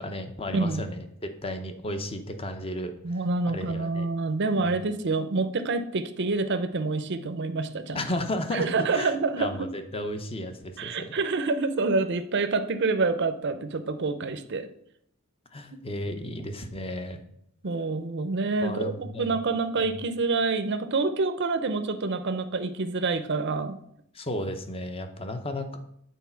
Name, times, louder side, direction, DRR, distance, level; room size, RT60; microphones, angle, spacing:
voice 1, 0.0-2.9 3.5-4.1 4.6-4.8 7.9-11.1 15.5-17.2 18.6-19.4 19.8-19.9 24.1-25.8, left 1 dB, 25° left, 7 dB, 0.8 m, -33 dB
voice 2, 0.5-0.9 3.0-8.0 8.5-9.5 10.8-14.7 17.6-23.8, right 3 dB, 50° right, 10 dB, 0.6 m, -27 dB
8.3 x 4.0 x 5.7 m, 0.72 s
head